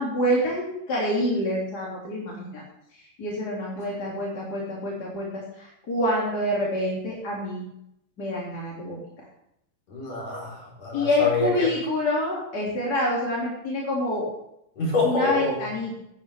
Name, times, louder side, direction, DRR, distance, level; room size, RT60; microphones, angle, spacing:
voice 1, 0.0-2.6 3.2-7.6 8.2-9.0 10.9-14.3 15.0-15.9, left 1 dB, 30° left, -5 dB, 2.7 m, -27 dB
voice 2, 9.9-11.7 14.8-15.6, left 3 dB, 55° left, -3 dB, 5.1 m, -26 dB
16.5 x 11.0 x 3.4 m, 0.79 s
omnidirectional pair, 3.8 m